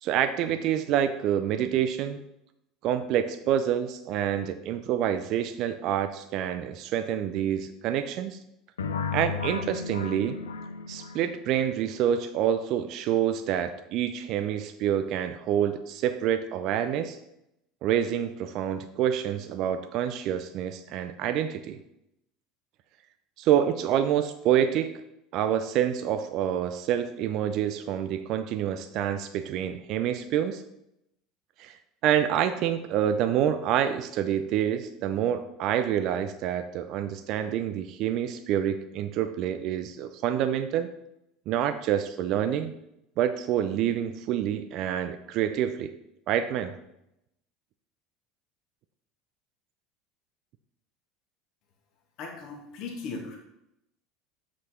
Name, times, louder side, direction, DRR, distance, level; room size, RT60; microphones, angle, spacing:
voice 1, 0.0-2.2 2.8-8.4 9.1-10.4 10.9-17.2 17.8-21.8 23.4-24.9 25.3-30.6 31.6-31.7 32.0-40.9 41.5-42.7 43.2-45.9 46.3-46.7, right 10 dB, 50° right, 10 dB, 0.5 m, -27 dB
sound 1, 8.8-11.7, left 5 dB, 80° left, 0.5 m, -34 dB
voice 2, 52.2-53.4, left 4 dB, 50° left, 0 dB, 2.1 m, -37 dB
7.6 x 6.3 x 4.5 m, 0.83 s
figure-of-eight pair, 70°, 0 cm